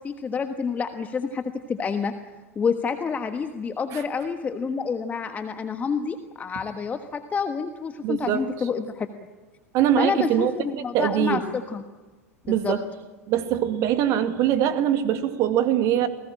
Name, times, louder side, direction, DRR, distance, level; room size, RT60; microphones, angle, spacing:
voice 1, 0.0-1.4 1.7-2.1 2.5-9.1 10.0-11.4 11.7-11.8 12.4-12.8, left 5 dB, 20° left, 7 dB, 1.4 m, -28 dB
voice 2, 8.0-8.5 9.7-11.4 12.5-12.8 13.3-16.1, right 10 dB, 40° right, 9 dB, 2.2 m, -23 dB
28.5 x 19.5 x 8.8 m, 1.3 s
figure-of-eight pair, 85°, 8 cm